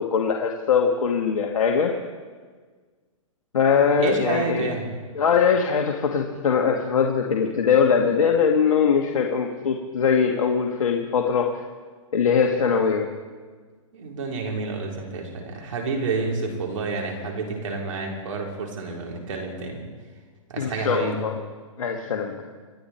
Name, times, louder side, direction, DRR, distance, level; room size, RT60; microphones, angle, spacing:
voice 1, 0.0-1.9 3.5-4.7 5.2-11.5 12.1-13.1 20.6-21.4 21.8-22.5, left 6 dB, 80° left, 1 dB, 1.7 m, -21 dB
voice 2, 4.0-4.9 13.9-19.9 20.5-21.2, right 4 dB, 70° right, 0 dB, 4.0 m, -29 dB
26.5 x 10.5 x 4.4 m, 1.5 s
hypercardioid pair, 140°, 17 cm